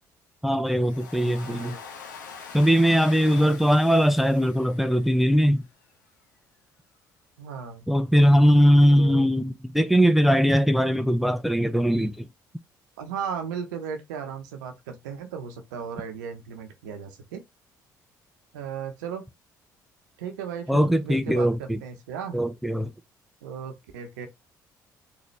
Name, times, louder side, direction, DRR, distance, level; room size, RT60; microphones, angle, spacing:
voice 1, 0.4-1.8 2.5-5.7 7.9-12.3 20.7-21.8 22.3-22.9, equal, ahead, 0.5 m, -20 dB
Domestic sounds home sounds, 0.7-5.6, left 6 dB, 80° left, 0.7 m, -43 dB
voice 2, 1.2-1.8 7.4-7.8 8.9-9.3 13.0-17.4 18.5-19.3 20.2-22.4 23.4-24.3, right 7 dB, 75° right, 0.8 m, -36 dB
4.1 x 2.7 x 3.2 m
figure-of-eight pair, 50°, 10 cm